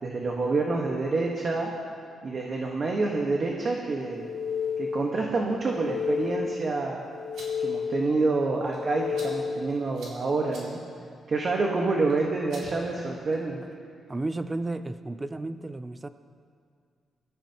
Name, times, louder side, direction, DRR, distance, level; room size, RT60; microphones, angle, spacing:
voice 1, 0.0-1.7 2.2-4.3 4.8-7.0 7.6-10.8 11.3-13.6, right 3 dB, 40° right, -1 dB, 1.4 m, -27 dB
sound 1, 4.1-5.2 5.6-6.7 7.1-8.2 8.6-9.8, left 6 dB, 20° left, 0.8 m, -32 dB
sound 2, 7.1-13.6, right 2 dB, 75° right, 4.2 m, -51 dB
voice 2, 14.1-16.1, right 2 dB, 20° right, 11 dB, 0.4 m, -33 dB
23.0 x 14.0 x 3.0 m, 2.2 s
cardioid pair, 130°, 0 cm